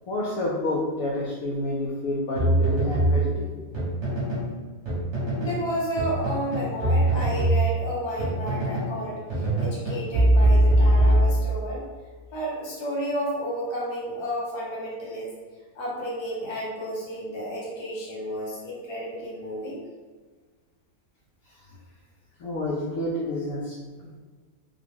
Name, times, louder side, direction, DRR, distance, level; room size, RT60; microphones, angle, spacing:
voice 1, 0.1-3.5 22.4-24.2, left 1 dB, 70° left, -5 dB, 0.9 m, -29 dB
sound 1, 2.4-4.5 4.9-5.6 6.0-9.0 9.3-11.7, right 1 dB, 40° right, 1.1 m, -22 dB
voice 2, 5.4-11.8 12.3-15.3 15.7-19.8, right 1 dB, 25° left, -6 dB, 0.5 m, -31 dB
3.6 x 2.2 x 3.4 m, 1.4 s
omnidirectional pair, 1.8 m